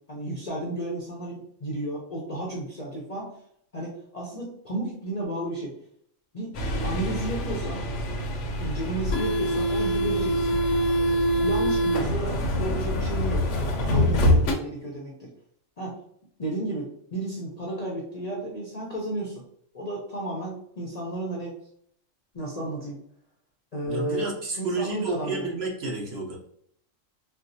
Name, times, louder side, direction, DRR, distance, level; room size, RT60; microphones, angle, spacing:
voice 1, 0.1-3.4 3.7-5.8 6.3-6.6 6.8-7.9 8.6-10.6 11.0-11.1 11.4-13.5 13.8-15.3 15.8-16.0 16.4-19.4 19.7-21.5 22.3-23.0 23.7-24.3 24.6-25.5, right 1 dB, 40° left, -3 dB, 0.6 m, -33 dB
sound 1, 6.5-14.5, equal, 70° left, 1.0 m, -24 dB
voice 2, 23.8-26.4, right 3 dB, 55° right, -2 dB, 1.0 m, -30 dB
4.4 x 2.0 x 2.6 m, 0.67 s
omnidirectional pair, 1.4 m